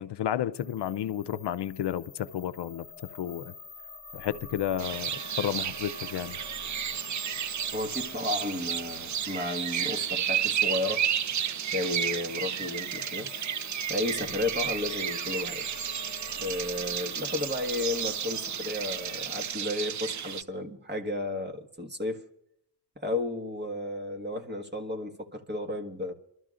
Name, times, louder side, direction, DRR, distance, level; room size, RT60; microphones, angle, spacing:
voice 1, 0.0-3.5 4.1-6.4, left 10 dB, 80° left, 0.6 m, -32 dB
sound 1, 0.5-19.5, left 3 dB, 40° left, 1.0 m, -46 dB
sound 2, 4.8-20.4, right 9 dB, 45° right, 0.5 m, -32 dB
voice 2, 7.7-11.1 11.7-13.3 13.9-15.7 16.4-22.2 23.0-26.1, left 2 dB, 25° right, 1.5 m, -33 dB
29.5 x 13.0 x 2.5 m
wide cardioid pair, 90°, 41 cm